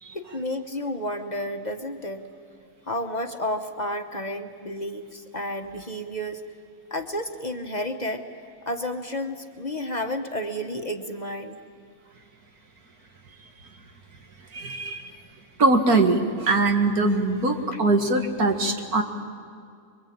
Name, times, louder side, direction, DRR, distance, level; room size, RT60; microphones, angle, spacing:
voice 1, 0.1-2.2 2.9-6.4 6.9-8.2 8.6-11.6 17.7-17.8, left 1 dB, 30° left, 5 dB, 1.1 m, -31 dB
voice 2, 14.5-15.1 15.6-19.0, right 2 dB, 80° right, 4 dB, 2.5 m, -22 dB
26.0 x 23.0 x 8.7 m, 2.3 s
omnidirectional pair, 1.5 m